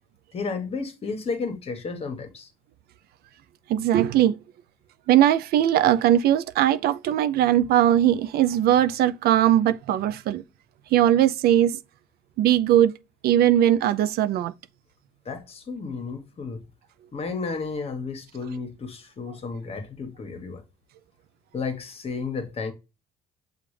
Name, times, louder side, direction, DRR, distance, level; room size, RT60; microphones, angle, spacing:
voice 1, 0.3-2.5 15.2-16.6 17.1-20.6 21.5-22.7, left 4 dB, 35° left, 1.1 m, -32 dB
voice 2, 3.7-4.4 5.1-10.4 10.9-11.8 12.4-12.9 13.2-14.5, right 11 dB, 65° right, 0.4 m, -20 dB
6.7 x 2.4 x 3.2 m
cardioid pair, 110°, 17 cm